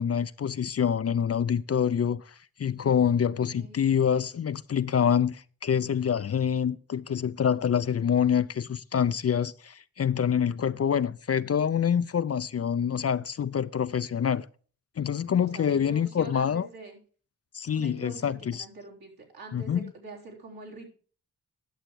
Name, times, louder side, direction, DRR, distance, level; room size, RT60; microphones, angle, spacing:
voice 1, 0.0-14.5 15.0-16.7 17.5-18.7 19.5-19.8, left 8 dB, 40° left, 0.5 m, -26 dB
voice 2, 15.4-17.0 17.7-20.9, right 3 dB, 70° right, 3.6 m, -45 dB
11.5 x 6.7 x 4.7 m
supercardioid pair, 40°, 38 cm